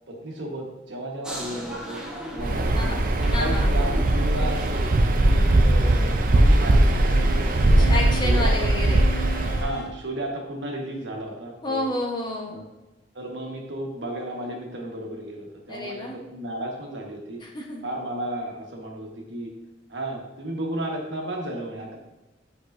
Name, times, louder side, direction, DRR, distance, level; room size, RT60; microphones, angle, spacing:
voice 1, 0.1-2.0 2.3-2.9 3.2-4.9 5.3-7.9 8.2-8.7 9.4-11.9 12.5-12.6 13.1-17.4 17.8-19.5 19.9-22.0, right 1 dB, 80° right, 0 dB, 1.3 m, -33 dB
sound 1, 1.2-6.7, equal, 5° right, 1.0 m, -37 dB
Waves surf, 2.4-9.7, right 1 dB, 50° right, 0.5 m, -20 dB
voice 2, 2.7-3.7 7.8-9.1 11.6-12.6 15.7-16.2 17.4-17.8, left 1 dB, 25° left, -1 dB, 1.0 m, -30 dB
sound 2, 7.1-10.0, right 1 dB, 60° left, 0.5 m, -37 dB
8.1 x 4.7 x 2.6 m, 1.0 s
head